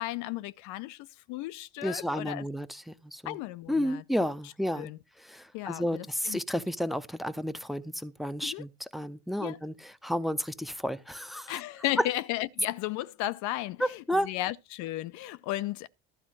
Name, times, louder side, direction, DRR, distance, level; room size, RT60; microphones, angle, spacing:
voice 1, 0.0-2.4 3.3-4.0 4.8-5.0 5.5-6.4 8.4-8.7 9.4-9.6 11.5-15.9, left 16 dB, 70° left, 0.6 m, -34 dB
voice 2, 1.8-3.4 3.7-4.9 5.2-11.6 12.0-12.1 13.8-14.3, equal, ahead, 0.8 m, -32 dB
12.5 x 4.2 x 7.4 m
supercardioid pair, 80°, 31 cm